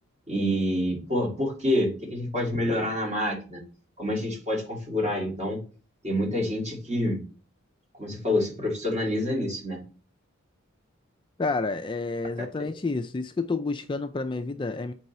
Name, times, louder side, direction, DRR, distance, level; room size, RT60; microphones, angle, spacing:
voice 1, 0.3-3.6 4.0-5.6 6.0-7.2 8.0-9.8, left 1 dB, 35° right, 2.2 m, -27 dB
voice 2, 11.4-14.9, left 3 dB, 25° left, 0.3 m, -29 dB
7.8 x 4.7 x 4.2 m
head